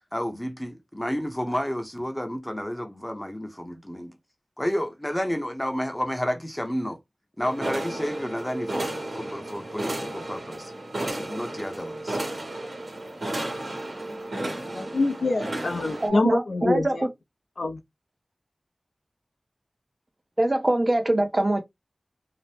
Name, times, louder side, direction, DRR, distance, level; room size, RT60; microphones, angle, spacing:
voice 1, 0.1-4.2 4.6-7.0 7.4-8.9 9.1-10.7 11.1-12.2 13.4-14.9, equal, 15° left, 0.6 m, -31 dB
sound 1, 7.4-16.1, right 1 dB, 70° right, 1.2 m, -33 dB
voice 2, 14.7-17.0 17.6-17.8, left 2 dB, 85° left, 0.4 m, -25 dB
voice 3, 16.0-17.1 20.4-21.6, right 1 dB, 35° right, 0.6 m, -23 dB
2.7 x 2.0 x 3.2 m
wide cardioid pair, 75°, 0 cm